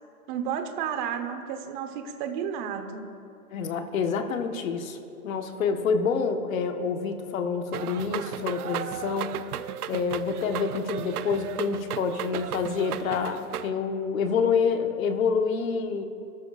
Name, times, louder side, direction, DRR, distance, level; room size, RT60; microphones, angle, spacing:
voice 1, 0.3-3.0, right 8 dB, 35° right, 6 dB, 1.1 m, -32 dB
voice 2, 3.5-5.0 5.2-9.4 9.9-16.0, left 5 dB, 65° left, 6 dB, 1.4 m, -27 dB
sound 1, 7.7-13.7, right 10 dB, 90° right, 0.8 m, -35 dB
27.5 x 13.0 x 2.5 m, 2.6 s
hypercardioid pair, 155°, 44 cm